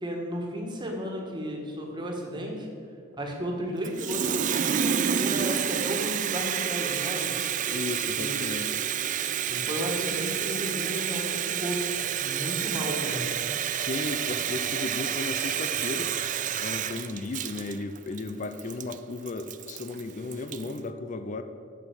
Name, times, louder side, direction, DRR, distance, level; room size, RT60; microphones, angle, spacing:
voice 1, 0.0-2.7 3.2-7.3 8.2-8.4 9.5-11.8 12.2-13.3, equal, 25° right, 0 dB, 1.7 m, -33 dB
Water tap faucet, 3.8-20.8, right 8 dB, 40° right, 0.4 m, -29 dB
voice 2, 7.7-8.7 13.8-16.1 16.6-21.4, left 3 dB, 40° left, 9 dB, 0.5 m, -35 dB
9.0 x 6.3 x 7.4 m, 2.3 s
head